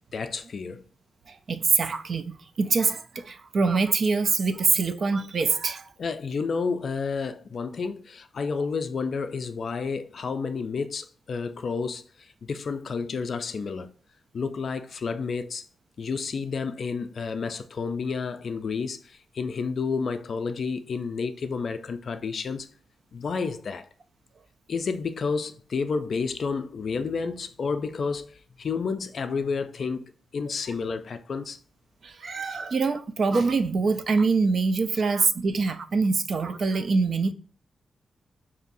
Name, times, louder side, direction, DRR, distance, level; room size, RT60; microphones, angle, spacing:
voice 1, 0.1-0.8 6.0-13.9 14.3-15.6 16.0-22.7 23.1-23.9 24.7-31.6, left 5 dB, 45° left, 0.3 m, -30 dB
voice 2, 1.3-5.8 32.0-37.3, right 4 dB, 45° right, 0.3 m, -24 dB
5.3 x 2.7 x 2.6 m
wide cardioid pair, 175°, 0 cm